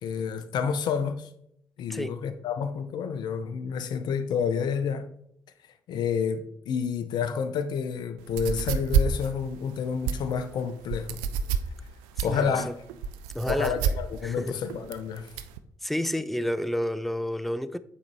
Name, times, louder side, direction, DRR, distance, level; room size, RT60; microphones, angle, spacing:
voice 1, 0.0-1.3 1.8-5.1 5.9-11.2 12.2-12.7 13.4-15.3, left 6 dB, 55° left, 0.5 m, -29 dB
sound 1, 8.2-15.6, right 7 dB, 70° right, 0.4 m, -29 dB
voice 2, 12.2-12.7 13.3-13.8 14.2-14.6 15.8-17.8, equal, ahead, 0.4 m, -30 dB
8.6 x 3.9 x 2.9 m
figure-of-eight pair, 40°, 9 cm